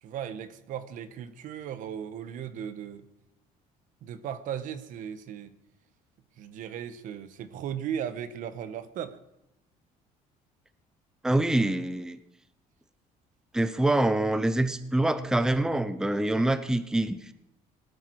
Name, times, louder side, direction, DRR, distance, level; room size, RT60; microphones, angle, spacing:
voice 1, 0.0-3.1 4.0-5.6 6.4-9.2 16.3-16.5, right 9 dB, 65° right, 12 dB, 1.3 m, -37 dB
voice 2, 11.2-12.2 13.5-17.3, right 1 dB, 5° right, 12 dB, 0.8 m, -25 dB
19.0 x 13.0 x 4.8 m, 0.85 s
cardioid pair, 135°, 15 cm